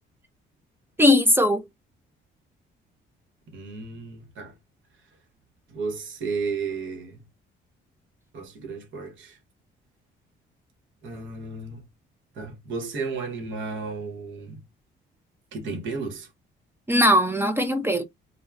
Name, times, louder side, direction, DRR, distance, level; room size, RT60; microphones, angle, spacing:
voice 1, 1.0-1.6 16.9-18.0, left 1 dB, 10° right, 0.4 m, -19 dB
voice 2, 3.5-4.5 5.7-7.3 8.3-9.4 11.0-11.8 12.4-14.6 15.5-16.3, right 4 dB, 75° right, 1.0 m, -33 dB
2.3 x 2.2 x 3.3 m
cardioid pair, 90°, 20 cm